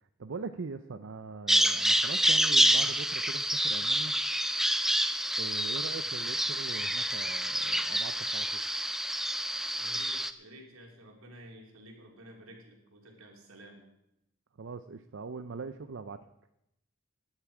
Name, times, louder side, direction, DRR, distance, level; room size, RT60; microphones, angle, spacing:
voice 1, 0.2-4.1 5.4-8.5 14.6-16.2, right 4 dB, 60° right, 10 dB, 0.6 m, -41 dB
Bird vocalization bird call bird song, 1.5-10.3, right 1 dB, ahead, 0.5 m, -28 dB
voice 2, 9.7-13.8, right 1 dB, 80° right, 1 dB, 3.2 m, -51 dB
16.0 x 10.5 x 4.9 m, 0.85 s
head